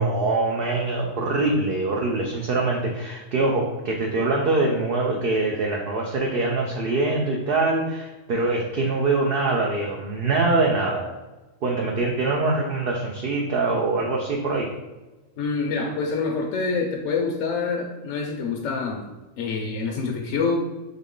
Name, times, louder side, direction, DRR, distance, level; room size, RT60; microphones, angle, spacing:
voice 1, 0.0-11.1 11.6-14.7, right 3 dB, 55° right, 0 dB, 0.7 m, -24 dB
voice 2, 15.4-19.1 19.4-20.6, left 4 dB, 75° left, 0 dB, 0.9 m, -26 dB
3.8 x 3.6 x 3.6 m, 1.1 s
omnidirectional pair, 1.4 m